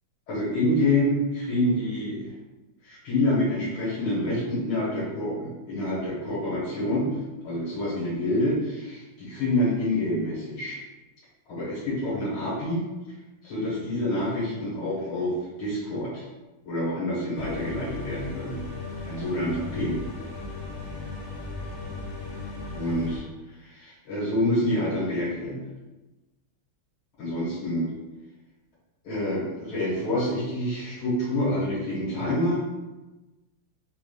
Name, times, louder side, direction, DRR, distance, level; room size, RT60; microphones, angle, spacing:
voice 1, 0.3-2.3 2.8-7.1 7.4-10.8 11.5-12.8 13.4-16.2 16.7-18.6 19.1-20.0 22.7-23.2 23.6-25.6 27.2-27.9 29.0-32.6, left 1 dB, 85° left, -9 dB, 2.3 m, -27 dB
sound 1, 17.3-23.2, left 3 dB, 45° left, 1.2 m, -36 dB
4.8 x 2.2 x 3.3 m, 1.1 s
omnidirectional pair, 2.3 m